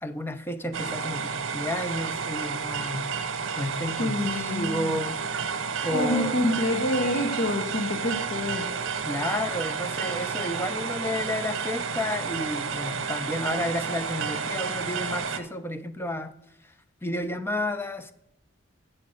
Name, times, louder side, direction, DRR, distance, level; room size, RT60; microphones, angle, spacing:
voice 1, 0.0-3.1 3.5-5.2 5.8-6.4 9.0-16.3 17.0-18.1, left 1 dB, 10° left, 0.4 m, -31 dB
sound 1, 0.7-15.4, right 5 dB, 90° right, 0.8 m, -31 dB
voice 2, 4.0-5.0 5.9-8.8, left 1 dB, 70° left, 0.9 m, -27 dB
7.6 x 7.3 x 6.3 m
head